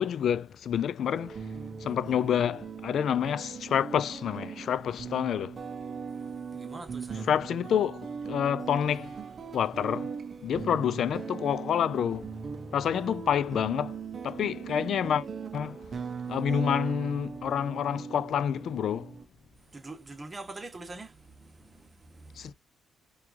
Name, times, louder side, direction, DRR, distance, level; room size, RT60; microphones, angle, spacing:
voice 1, 0.0-1.4 1.8-5.6 7.2-9.2 9.5-10.1 10.4-12.3 12.7-14.0 14.2-15.3 15.5-15.8 16.3-19.1 22.4-22.5, left 9 dB, 65° left, 0.4 m, -28 dB
sound 1, 1.1-19.3, right 6 dB, 45° right, 0.6 m, -39 dB
voice 2, 6.5-7.3 19.7-22.5, right 2 dB, 25° right, 1.0 m, -44 dB
4.5 x 2.4 x 2.6 m
cardioid pair, 90°, 0 cm